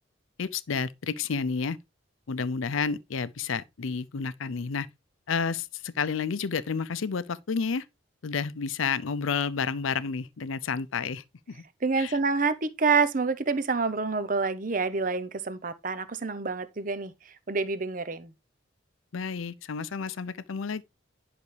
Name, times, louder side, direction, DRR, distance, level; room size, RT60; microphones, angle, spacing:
voice 1, 0.4-1.8 2.3-4.9 5.3-7.9 8.2-11.6 12.0-12.2 19.1-20.8, left 5 dB, 75° left, 0.5 m, -30 dB
voice 2, 11.8-17.1 17.5-18.3, right 4 dB, 40° right, 0.8 m, -27 dB
11.0 x 5.8 x 3.3 m
head